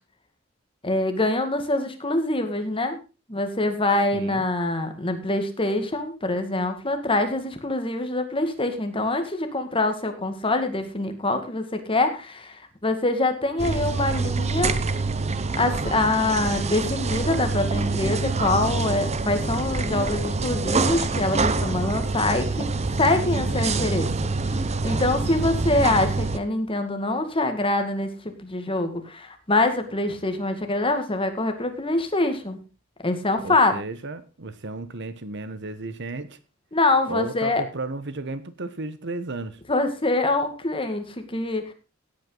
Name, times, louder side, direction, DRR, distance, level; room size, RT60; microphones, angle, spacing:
voice 1, 0.8-3.0 3.3-12.6 12.8-14.7 15.6-22.7 23.0-24.1 24.8-32.6 33.0-33.8 36.7-37.6 39.7-41.7, left 2 dB, 25° left, 2.1 m, -24 dB
voice 2, 4.1-4.4 33.4-36.4 37.1-39.6, right 2 dB, 60° right, 1.2 m, -34 dB
sound 1, 13.6-26.4, right 3 dB, 35° right, 0.9 m, -26 dB
16.5 x 8.8 x 4.0 m
head